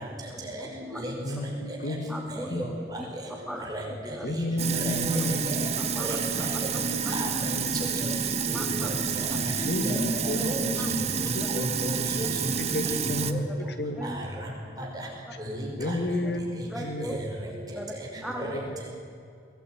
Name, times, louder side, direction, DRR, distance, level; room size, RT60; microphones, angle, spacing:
voice 1, 0.3-1.4 2.1-2.7 3.0-3.1 3.5-4.3 5.1-5.3 5.9-6.6 7.0-7.2 8.0-8.2 8.5-8.9 10.8-11.3 12.2-12.3 14.0-14.2 15.3-15.4 15.8-15.9 16.7-17.2 17.7-17.9 18.2-18.6, right 1 dB, ahead, 0 dB, 1.8 m, -39 dB
voice 2, 1.2-2.2 2.5-2.8 4.2-5.7 7.5-7.7 9.7-11.7 12.5-14.2 15.8-17.2 18.1-18.8, left 1 dB, 70° left, 7 dB, 2.0 m, -32 dB
Sink (filling or washing), 4.6-13.3, right 5 dB, 40° right, 1.1 m, -29 dB
voice 3, 6.8-7.6 8.6-8.9 9.6-10.0 10.4-10.6 11.5-12.3 13.3-13.4 14.0-14.1 15.5-15.9 17.0-17.2 18.4-18.6, equal, 20° right, -1 dB, 5.5 m, -34 dB
22.5 x 18.5 x 9.4 m, 2.5 s
head